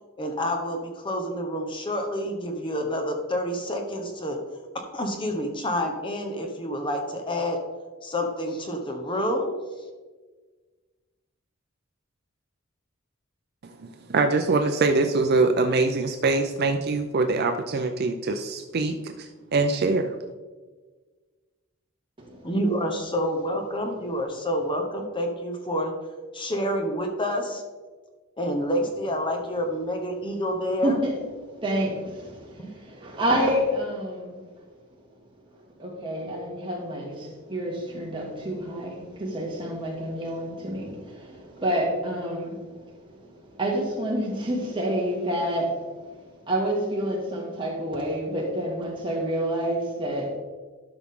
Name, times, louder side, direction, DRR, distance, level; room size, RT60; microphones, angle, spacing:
voice 1, 0.2-4.4 4.9-7.6 8.0-9.5 22.4-25.9 26.3-27.6 28.4-31.0 32.6-32.7, equal, 25° left, 3 dB, 0.9 m, -28 dB
voice 2, 13.6-20.2, right 3 dB, 50° right, 6 dB, 0.5 m, -24 dB
voice 3, 22.2-22.5 30.8-31.1 31.5-34.4 35.8-45.8 46.5-50.4, right 1 dB, 25° right, -2 dB, 2.2 m, -28 dB
12.5 x 5.9 x 3.7 m, 1.4 s
head